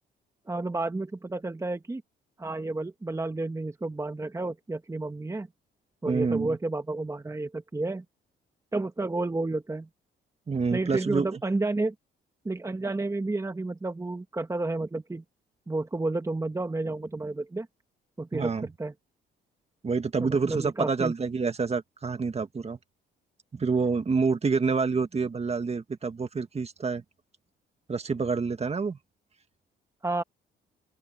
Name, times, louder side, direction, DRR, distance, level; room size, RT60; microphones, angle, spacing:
voice 1, 0.5-2.0 2.4-5.5 6.0-8.0 8.7-9.9 10.7-11.9 12.4-15.2 15.7-17.7 18.2-18.9 20.2-21.1 30.0-30.2, right 2 dB, 15° right, 1.4 m, -31 dB
voice 2, 6.1-6.6 10.5-11.4 18.3-18.7 19.8-22.8 23.5-27.0 27.9-29.0, right 4 dB, 30° right, 1.9 m, -27 dB
open air
cardioid pair, 90°, 20 cm